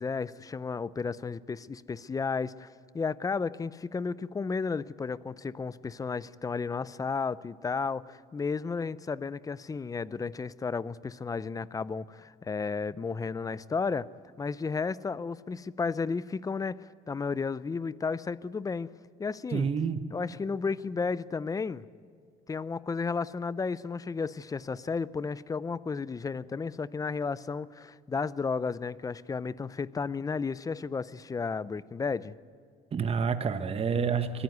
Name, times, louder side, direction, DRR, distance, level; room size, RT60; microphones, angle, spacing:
voice 1, 0.0-2.7 2.9-14.1 14.4-18.9 19.2-19.7 20.1-21.9 22.5-32.4, left 5 dB, 20° left, 18 dB, 0.6 m, -33 dB
voice 2, 19.5-20.0 32.9-34.4, right 6 dB, 35° right, 9 dB, 1.2 m, -28 dB
23.0 x 14.5 x 9.4 m, 2.3 s
cardioid pair, 110°, 17 cm